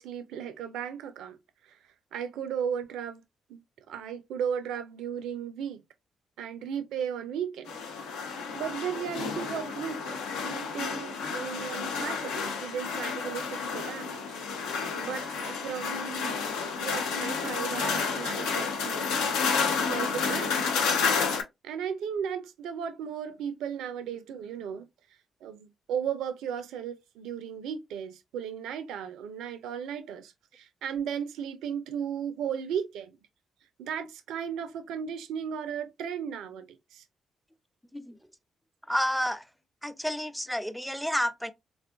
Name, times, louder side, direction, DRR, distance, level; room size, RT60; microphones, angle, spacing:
voice 1, 0.0-1.4 2.1-3.2 3.5-3.6 3.9-5.8 6.4-7.8 8.5-14.2 14.9-16.4 16.8-19.1 19.9-20.6 21.6-24.9 25.4-33.2 33.8-36.7 36.9-37.0, right 8 dB, 75° right, 0.4 m, -35 dB
sound 1, 7.7-21.4, left 5 dB, 80° left, 0.5 m, -30 dB
voice 2, 38.9-39.4 39.8-41.5, equal, ahead, 0.5 m, -30 dB
3.5 x 2.3 x 2.2 m
hypercardioid pair, 45°, 0 cm